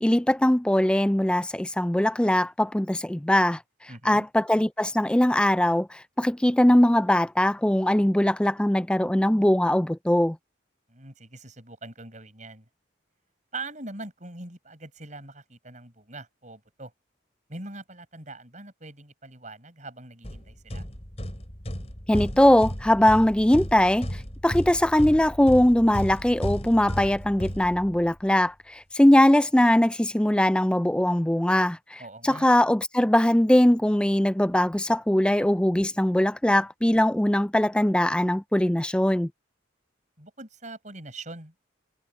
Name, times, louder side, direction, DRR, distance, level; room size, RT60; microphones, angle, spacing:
voice 1, 0.0-3.6 4.0-10.4 22.1-24.1 24.4-39.3, left 1 dB, 5° left, 0.4 m, -21 dB
voice 2, 3.9-4.3 10.9-12.7 13.5-16.9 17.5-20.9 32.0-32.5 40.2-41.7, right 2 dB, 40° right, 7.6 m, -42 dB
sound 1, 20.2-28.2, equal, 35° left, 5.2 m, -34 dB
head